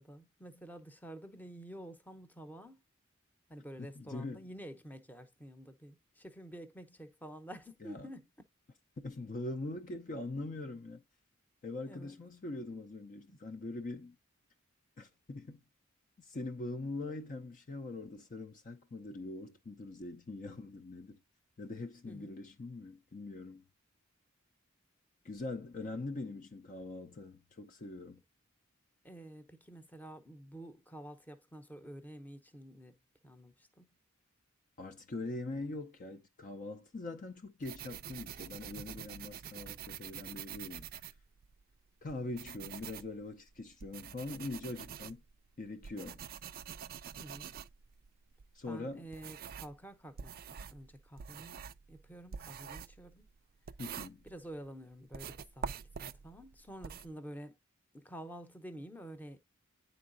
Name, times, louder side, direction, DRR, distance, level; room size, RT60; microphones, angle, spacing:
voice 1, 0.0-2.8 3.5-8.3 11.9-12.2 13.3-13.4 22.1-22.4 29.0-33.0 33.2-33.9 47.2-47.5 48.7-53.3 54.2-57.6 57.9-59.4, right 1 dB, 10° left, 0.8 m, -49 dB
voice 2, 3.8-4.5 7.8-8.1 9.0-11.0 11.6-14.2 15.0-15.6 16.2-21.2 21.6-23.6 25.2-28.2 34.8-40.9 42.0-45.2 45.6-46.2 48.5-49.0 53.8-54.2, left 2 dB, 40° left, 0.6 m, -42 dB
sound 1, 37.6-41.6 42.1-49.8 50.2-54.7 55.1-57.1, right 8 dB, 45° right, 0.4 m, -46 dB
9.6 x 3.9 x 2.5 m
head